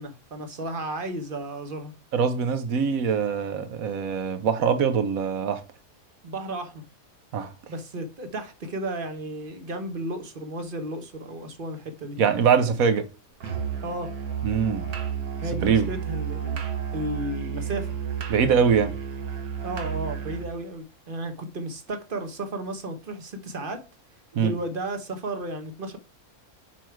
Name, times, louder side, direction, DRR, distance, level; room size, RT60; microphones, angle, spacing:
voice 1, 0.0-1.9 6.2-6.8 7.7-12.2 13.8-14.1 15.4-16.6 16.9-17.9 19.6-23.9 24.4-26.0, right 1 dB, 40° right, 1.1 m, -33 dB
voice 2, 2.1-5.6 7.3-7.5 12.2-13.1 14.4-14.9 15.6-15.9 18.3-18.9 24.3-24.5, right 6 dB, 70° right, 1.3 m, -23 dB
Musical instrument, 13.4-20.5, right 8 dB, 85° right, 1.7 m, -31 dB
5.8 x 4.6 x 4.6 m
omnidirectional pair, 1.5 m